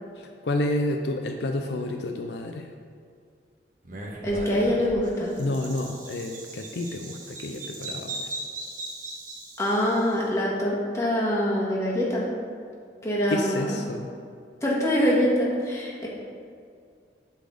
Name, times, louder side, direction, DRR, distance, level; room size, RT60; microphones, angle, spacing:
voice 1, 0.2-2.7 5.4-8.4 13.3-14.1, left 1 dB, 70° left, 4 dB, 0.5 m, -30 dB
Bird vocalization bird call bird song, 3.8-10.1, right 2 dB, 45° right, 1.3 m, -38 dB
voice 2, 4.2-5.3 9.6-12.3 13.0-13.7 14.6-16.1, equal, 15° left, -5 dB, 1.6 m, -24 dB
8.3 x 4.1 x 6.6 m, 2.2 s
head